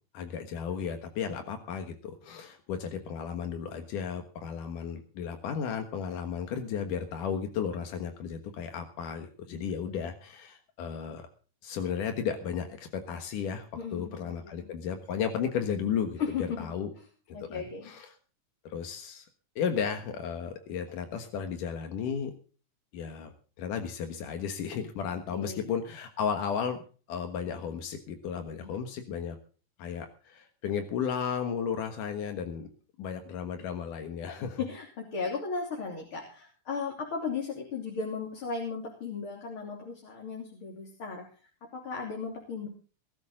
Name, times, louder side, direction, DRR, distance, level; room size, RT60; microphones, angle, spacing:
voice 1, 0.1-11.3 11.6-16.9 17.5-18.1 18.6-19.3 19.6-22.3 22.9-23.3 23.6-26.8 27.1-29.4 29.8-32.7 33.0-34.6, left 7 dB, 80° left, 6 dB, 3.1 m, -34 dB
voice 2, 13.8-14.8 16.2-16.7 17.0-17.1 17.3-17.9 25.3-25.6 28.6-28.8 34.6-41.2 41.7-42.7, left 5 dB, 40° left, 1 dB, 3.8 m, -36 dB
21.0 x 12.5 x 3.7 m, 0.39 s
omnidirectional pair, 3.6 m